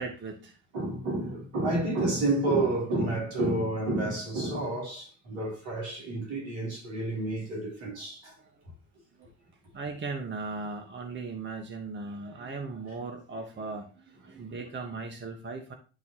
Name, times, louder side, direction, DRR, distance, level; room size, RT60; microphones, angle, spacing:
voice 1, 0.0-0.6 5.3-5.4 8.3-8.5 9.7-15.7, right 3 dB, 25° right, 1.3 m, -38 dB
voice 2, 0.7-8.3 14.3-14.4, right 2 dB, 70° right, 3.2 m, -30 dB
11.0 x 4.1 x 2.9 m
hypercardioid pair, 65°, 43 cm